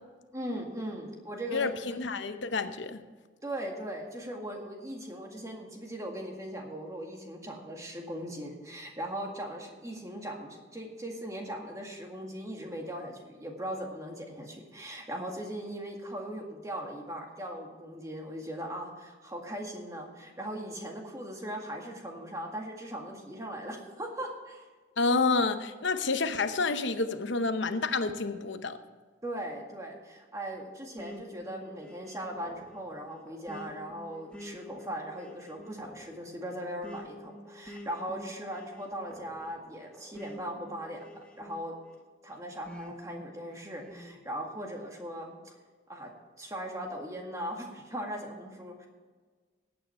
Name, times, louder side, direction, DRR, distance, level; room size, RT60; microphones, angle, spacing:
voice 1, 0.3-1.7 3.4-24.7 29.2-41.7 42.2-45.5 45.9-46.1 46.4-48.9, right 1 dB, 15° right, 1.9 m, -39 dB
voice 2, 1.5-3.0 25.0-28.8, left 3 dB, 80° left, 0.8 m, -29 dB
sound 1, 31.0-42.0 42.7-44.2, equal, 5° left, 1.1 m, -48 dB
15.0 x 9.2 x 4.6 m
head